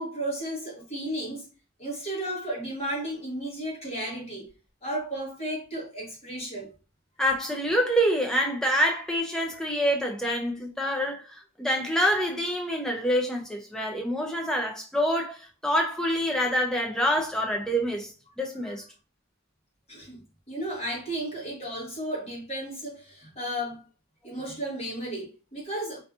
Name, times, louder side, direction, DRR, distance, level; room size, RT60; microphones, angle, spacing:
voice 1, 0.0-1.5 1.8-4.5 4.8-6.7 19.9-20.2 20.5-23.8 24.2-26.0, right 1 dB, 30° left, 1.0 m, -34 dB
voice 2, 7.2-18.1 18.4-18.8, equal, 5° left, 0.3 m, -26 dB
2.6 x 2.5 x 2.3 m
head